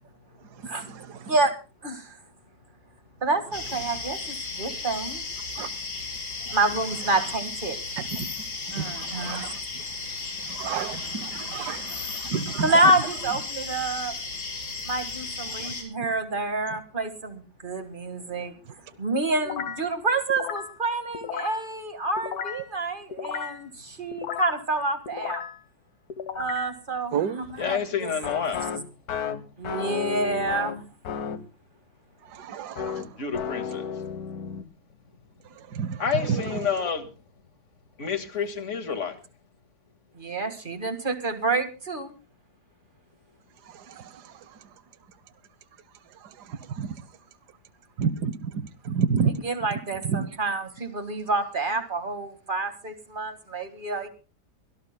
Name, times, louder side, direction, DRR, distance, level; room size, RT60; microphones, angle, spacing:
voice 1, 0.9-1.2 5.6-5.7 8.0-8.1 8.7-9.6 10.5-12.7 27.1-27.4 32.3-33.0 35.7-36.0 36.3-36.6 44.0-44.1 46.8-46.9 48.0-48.5 48.8-49.3 50.0-50.3, right 6 dB, 75° right, 1.5 m, -29 dB
voice 2, 1.8-2.2 3.2-5.2 6.5-7.8 8.7-9.5 12.6-14.1 14.8-18.5 19.0-25.4 26.3-28.1 28.4-28.5 29.6-30.8 40.2-42.1 49.3-54.1, right 2 dB, 30° right, 1.9 m, -28 dB
sound 1, 3.5-15.8, left 3 dB, 90° left, 4.7 m, -35 dB
sound 2, 19.4-19.9 20.3-20.8 21.1-21.7 22.2-22.7 23.1-23.6 24.1-24.6 25.1-25.6 26.1-26.7 28.2-31.5 32.8-34.6, left 7 dB, 65° left, 1.5 m, -33 dB
voice 3, 27.6-28.7 33.2-33.9 36.0-37.1 38.0-39.2, left 7 dB, 45° left, 2.1 m, -29 dB
23.5 x 17.0 x 2.2 m
omnidirectional pair, 1.8 m